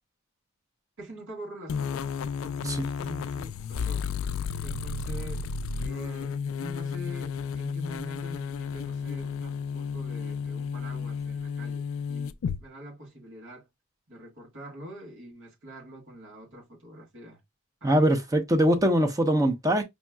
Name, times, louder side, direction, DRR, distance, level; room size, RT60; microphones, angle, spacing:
voice 1, 1.0-2.1 2.4-4.1 4.6-5.5 5.8-13.7 14.1-17.4 17.8-17.9, equal, 60° right, 1.7 m, -44 dB
sound 1, 1.7-12.6, left 6 dB, 70° left, 0.3 m, -32 dB
voice 2, 17.8-19.8, equal, 15° right, 0.7 m, -22 dB
5.3 x 2.9 x 2.3 m
head